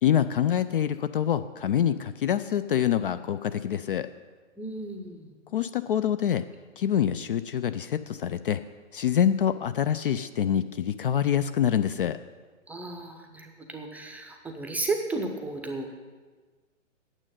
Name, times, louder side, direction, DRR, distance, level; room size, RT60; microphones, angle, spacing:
voice 1, 0.0-4.1 5.5-6.5 6.8-8.6 8.9-12.2, left 9 dB, 45° left, 12 dB, 0.4 m, -26 dB
voice 2, 4.6-5.3 12.7-15.9, right 3 dB, 5° right, 4 dB, 0.6 m, -34 dB
9.0 x 7.6 x 9.1 m, 1.4 s
figure-of-eight pair, 120°, 39 cm